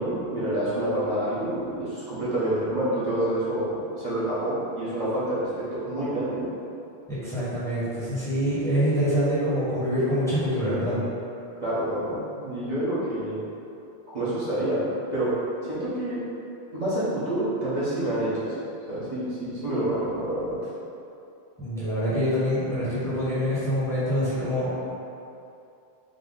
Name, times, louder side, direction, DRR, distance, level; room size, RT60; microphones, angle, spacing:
voice 1, 0.0-6.5 11.6-13.4 14.1-14.8 15.1-15.3 15.7-16.2 16.7-18.5 18.9-20.6, right 1 dB, 45° right, -12 dB, 1.2 m, -28 dB
voice 2, 7.2-11.0 21.6-24.7, equal, 5° left, -12 dB, 1.2 m, -25 dB
3.7 x 2.9 x 3.8 m, 2.7 s
omnidirectional pair, 1.0 m